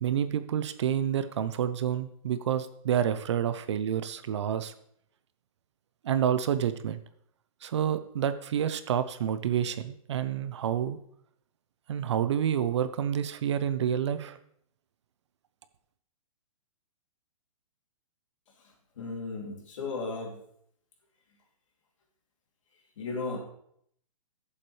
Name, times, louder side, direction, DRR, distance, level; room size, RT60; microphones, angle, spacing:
voice 1, 0.0-4.7 6.0-7.0 7.6-11.0 11.9-14.4, right 9 dB, 50° right, 12 dB, 0.7 m, -28 dB
voice 2, 19.0-20.4 23.0-23.4, left 3 dB, 60° left, 0 dB, 2.9 m, -35 dB
13.0 x 7.3 x 3.3 m, 0.68 s
hypercardioid pair, 170°, 18 cm